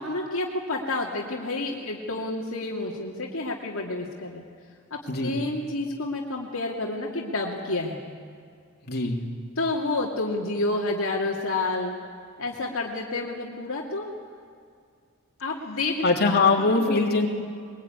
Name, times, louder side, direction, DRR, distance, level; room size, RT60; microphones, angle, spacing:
voice 1, 0.0-4.4 4.9-8.0 9.6-11.9 12.4-14.1 15.4-16.1 16.6-17.0, left 2 dB, 65° left, -2 dB, 2.5 m, -29 dB
voice 2, 8.9-9.2 16.0-17.3, left 3 dB, 45° left, -1 dB, 3.2 m, -22 dB
22.5 x 22.5 x 9.6 m, 2.2 s
head